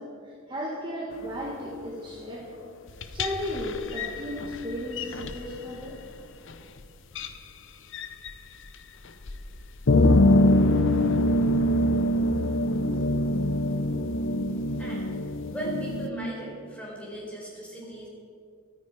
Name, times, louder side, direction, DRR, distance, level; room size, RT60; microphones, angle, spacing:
voice 1, 0.0-2.7 3.1-6.0, equal, 25° right, -3 dB, 1.5 m, -35 dB
sound 1, 2.9-5.5 6.5-6.6 7.2-7.3 7.9-8.3 9.2-9.4 9.6-16.1, left 1 dB, 65° left, 0.8 m, -24 dB
voice 2, 14.8-15.2 15.5-18.1, right 2 dB, 5° left, -4 dB, 4.5 m, -37 dB
23.5 x 9.2 x 4.8 m, 2.3 s
head